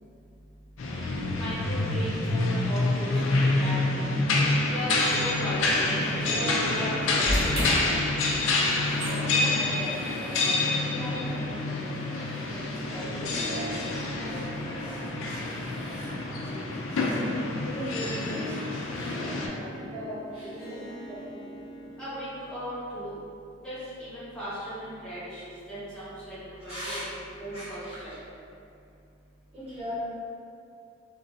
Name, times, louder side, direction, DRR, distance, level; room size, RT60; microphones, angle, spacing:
sound 1, 0.8-19.5, left 2 dB, 85° left, 0.4 m, -27 dB
voice 1, 0.9-3.8 4.7-8.0 22.0-23.1 23.6-26.4 26.6-27.0 27.4-28.1, equal, 5° left, -14 dB, 1.0 m, -37 dB
Harp, 3.0-22.6, equal, 50° left, 0.8 m, -42 dB
voice 2, 3.0-3.5 3.9-4.5 9.2-21.5 26.6-27.0 27.5-28.0 29.5-30.0, equal, 30° right, -15 dB, 1.1 m, -41 dB
sound 2, 7.2-13.5, equal, 80° right, 1.0 m, -35 dB
2.9 x 2.5 x 2.6 m, 2.5 s
head